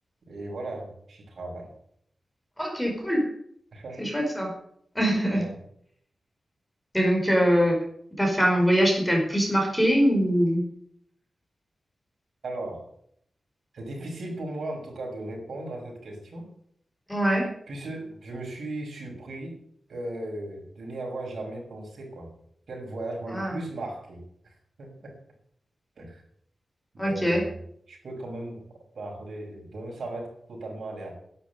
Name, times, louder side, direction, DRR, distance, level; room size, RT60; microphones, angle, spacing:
voice 1, 0.3-1.7 3.7-4.1 5.3-5.5 12.4-12.8 13.7-16.5 17.7-19.5 19.9-22.3 22.7-25.1 26.0-26.2 26.9-27.6 27.9-28.6 28.9-31.2, right 2 dB, 70° right, 0 dB, 6.1 m, -37 dB
voice 2, 2.6-3.3 4.0-4.5 4.9-5.4 6.9-7.8 8.2-10.6 17.1-17.5 23.3-23.6 27.0-27.4, equal, 5° left, 1 dB, 5.1 m, -23 dB
12.0 x 10.5 x 9.3 m, 0.68 s
wide cardioid pair, 135°, 0 cm